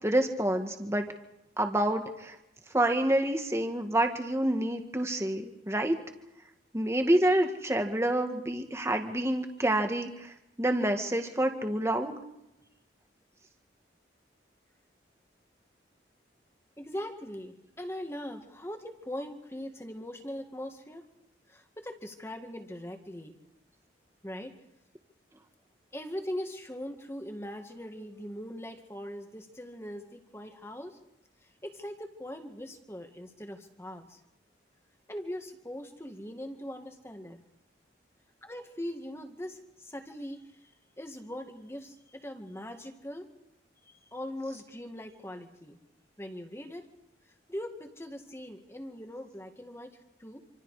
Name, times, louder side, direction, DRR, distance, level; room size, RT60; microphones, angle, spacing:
voice 1, 0.0-1.1 1.6-2.4 2.7-6.0 6.7-10.3 10.6-12.2, right 1 dB, 15° right, 5 dB, 1.8 m, -27 dB
voice 2, 16.8-21.1 21.5-23.4 24.2-24.6 25.9-31.0 31.4-34.2 35.1-37.4 38.4-43.3 43.9-45.8 46.2-46.9 47.5-50.4, left 1 dB, 15° left, 5 dB, 2.0 m, -41 dB
27.0 x 26.0 x 5.0 m, 0.85 s
head